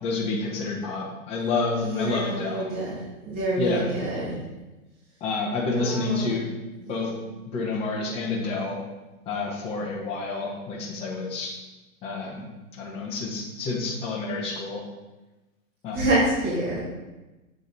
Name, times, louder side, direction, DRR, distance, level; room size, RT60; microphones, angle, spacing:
voice 1, 0.0-2.6 3.6-3.9 5.2-6.4 6.9-7.1 7.5-8.8 9.3-11.5 12.0-12.4 12.8-14.8 15.8-16.0, left 3 dB, 15° left, -4 dB, 0.9 m, -29 dB
voice 2, 1.8-2.9 3.3-4.3 5.7-6.5 6.8-7.2 15.9-16.8, right 1 dB, 20° right, -10 dB, 2.3 m, -27 dB
7.4 x 5.0 x 4.1 m, 1.1 s
hypercardioid pair, 155°, 42 cm